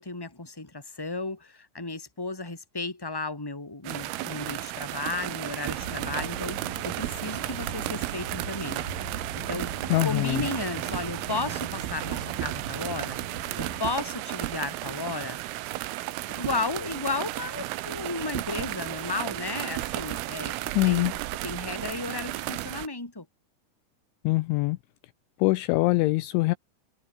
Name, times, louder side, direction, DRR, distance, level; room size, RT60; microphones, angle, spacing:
voice 1, 0.0-6.6 6.8-8.8 9.3-9.8 10.0-13.2 13.5-15.4 16.3-23.2, left 3 dB, 5° left, 3.2 m, -34 dB
sound 1, 3.8-22.9, right 17 dB, 90° right, 3.8 m, -34 dB
sound 2, 5.7-13.8, right 5 dB, 45° right, 6.3 m, -39 dB
voice 2, 9.9-10.5 20.8-21.1 24.2-24.8 25.4-26.6, left 21 dB, 85° left, 2.8 m, -23 dB
omnidirectional pair, 5.8 m